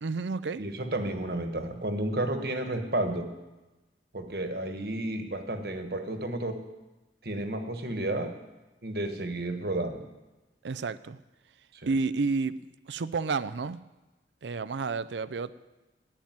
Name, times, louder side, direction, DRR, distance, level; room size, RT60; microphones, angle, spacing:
voice 1, 0.0-0.6 10.6-11.2 11.9-12.5 12.9-13.8 14.4-15.5, right 4 dB, 90° right, 14 dB, 0.5 m, -30 dB
voice 2, 0.6-3.3 4.1-6.6 7.2-8.3 8.8-10.0 11.7-11.9, right 1 dB, 60° right, 6 dB, 1.4 m, -32 dB
12.0 x 8.9 x 9.4 m, 1.1 s
head